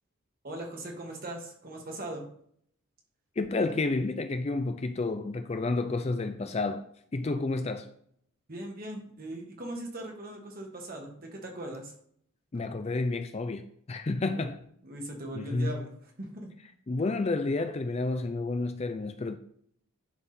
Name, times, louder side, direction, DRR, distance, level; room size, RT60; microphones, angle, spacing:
voice 1, 0.4-2.2 8.5-11.9 14.2-14.5 14.8-15.9 16.2-16.5, right 1 dB, 40° right, 1.6 m, -39 dB
voice 2, 3.4-6.9 7.1-7.9 12.5-14.6 15.3-15.7 16.9-19.4, left 3 dB, 30° left, 0.4 m, -30 dB
10.5 x 3.5 x 4.3 m
head